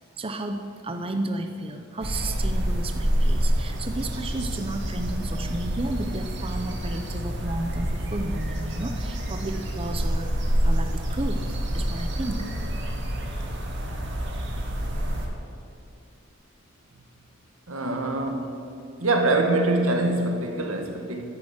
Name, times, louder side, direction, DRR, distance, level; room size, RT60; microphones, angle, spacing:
voice 1, 0.2-12.5, right 2 dB, 25° right, 5 dB, 0.7 m, -33 dB
sound 1, 2.0-15.3, equal, 60° right, 2.2 m, -27 dB
voice 2, 17.7-18.6 19.0-21.2, right 2 dB, 85° right, 4 dB, 2.0 m, -24 dB
11.0 x 10.0 x 9.8 m, 2.5 s
head